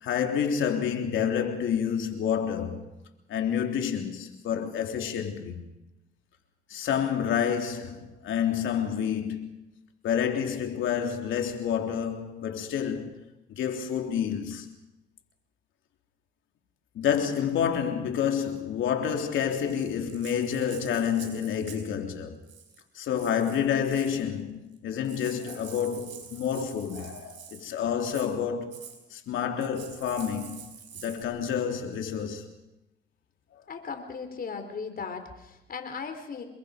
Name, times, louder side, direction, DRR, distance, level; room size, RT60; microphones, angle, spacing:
voice 1, 0.0-2.8 3.3-5.6 6.7-9.5 10.0-13.1 13.5-14.7 17.0-22.4 23.0-28.7 29.1-30.7 31.0-32.5, left 8 dB, 75° left, 3.5 m, -29 dB
Rattle (instrument), 19.6-21.9 22.4-22.8 23.1-24.2 24.8-24.9 25.0-27.7 28.0-28.3 28.7-29.0 29.6-31.2, right 8 dB, 70° right, 4.8 m, -47 dB
voice 2, 33.7-36.4, left 5 dB, 50° left, 4.1 m, -37 dB
28.5 x 22.5 x 5.3 m
cardioid pair, 90°, 20 cm